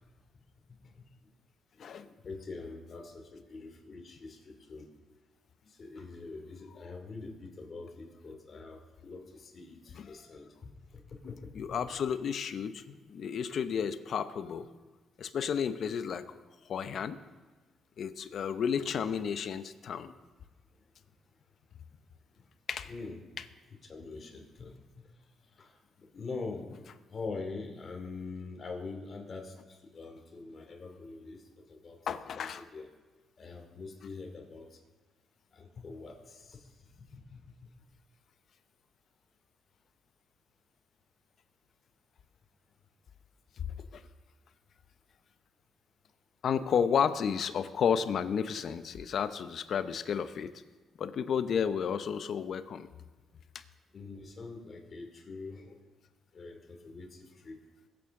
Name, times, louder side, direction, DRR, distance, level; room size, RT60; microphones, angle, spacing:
voice 1, 0.7-1.1 1.7-4.9 5.6-11.6 18.8-18.9 22.3-22.5 22.8-23.2 23.8-24.7 25.4-26.8 27.1-31.4 31.7-32.0 32.3-32.9 33.4-34.8 35.5-37.5 53.9-55.8 56.3-57.6, left 3 dB, 45° left, 3 dB, 2.7 m, -44 dB
voice 2, 11.5-14.7 15.2-16.4 16.7-17.2 18.0-20.1 22.7-22.9 32.1-32.6 43.9-44.0 46.4-50.6 51.0-52.9, left 7 dB, 60° left, 11 dB, 0.8 m, -32 dB
22.0 x 8.7 x 3.7 m, 1.2 s
cardioid pair, 90°, 0 cm